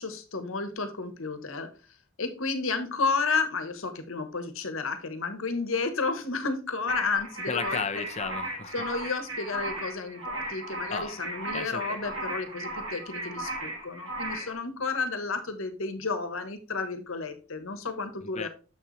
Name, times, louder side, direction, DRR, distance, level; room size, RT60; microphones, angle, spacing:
voice 1, 0.0-1.7 2.2-7.8 8.7-18.5, left 4 dB, 75° left, 9 dB, 1.2 m, -32 dB
sound 1, 6.9-14.6, right 1 dB, 65° right, 3.0 m, -36 dB
voice 2, 7.5-8.9 10.9-11.2 11.5-12.0 18.2-18.5, left 5 dB, 30° left, 10 dB, 0.6 m, -34 dB
7.2 x 6.6 x 3.2 m, 0.34 s
head